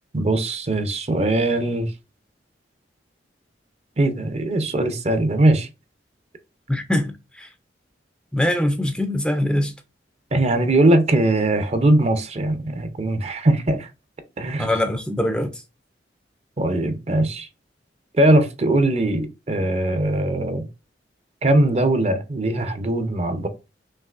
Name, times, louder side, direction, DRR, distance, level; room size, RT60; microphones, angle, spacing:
voice 1, 0.1-1.9 4.0-5.7 10.3-13.9 14.4-14.7 16.6-17.5 18.1-20.7 21.4-23.5, right 1 dB, 35° right, 0.6 m, -20 dB
voice 2, 6.7-7.5 8.3-9.7 14.6-15.6, left 1 dB, 5° left, 0.4 m, -23 dB
5.5 x 2.9 x 2.4 m
head